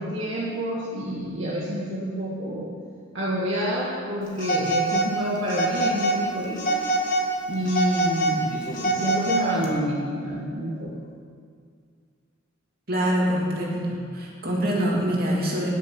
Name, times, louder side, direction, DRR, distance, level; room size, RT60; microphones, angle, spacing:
voice 1, 0.0-2.7 3.1-6.8 7.4-10.9 13.4-14.0, equal, 60° right, -6 dB, 1.9 m, -28 dB
Telephone, 4.4-5.1 5.5-6.2 6.6-7.3 7.7-9.7, right 2 dB, 40° left, 1.8 m, -24 dB
voice 2, 12.9-15.7, equal, 45° right, -3 dB, 3.0 m, -25 dB
20.0 x 7.4 x 6.1 m, 2.1 s
head